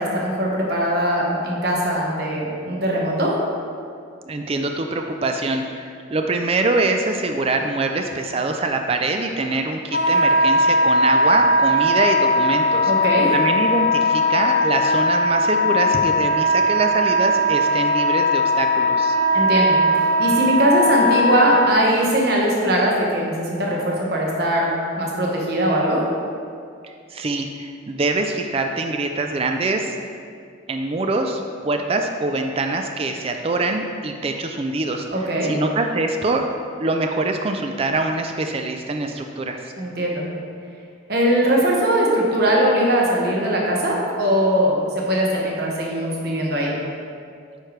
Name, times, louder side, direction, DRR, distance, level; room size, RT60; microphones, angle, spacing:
voice 1, 0.0-3.3 12.8-13.3 19.3-24.7 25.0-26.0 35.1-35.5 39.8-40.2 41.1-46.7, equal, 50° right, -2 dB, 1.2 m, -20 dB
voice 2, 4.3-12.9 13.3-19.2 26.8-29.9 30.7-35.1 35.4-36.4 36.8-39.6, right 2 dB, 30° right, 5 dB, 0.3 m, -24 dB
Wind instrument woodwind instrument, 9.9-21.7, equal, 65° left, 1.3 m, -19 dB
8.9 x 5.0 x 3.2 m, 2.3 s
head